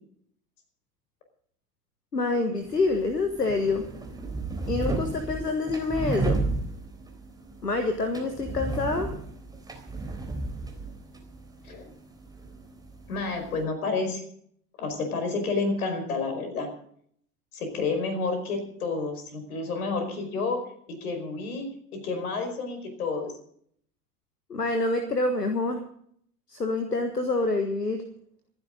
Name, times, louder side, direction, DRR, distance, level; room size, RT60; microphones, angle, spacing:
voice 1, 2.1-3.8 4.7-6.4 7.6-9.1 24.5-25.8 26.5-28.0, left 3 dB, 85° left, 7 dB, 1.6 m, -26 dB
sound 1, 2.6-13.6, right 3 dB, 10° right, 3.6 m, -34 dB
voice 2, 13.1-14.2 14.8-16.7 17.5-20.6 21.0-21.7 21.9-23.3, left 3 dB, 65° left, 6 dB, 5.1 m, -30 dB
26.5 x 10.5 x 3.9 m, 0.65 s
figure-of-eight pair, 80°, 47 cm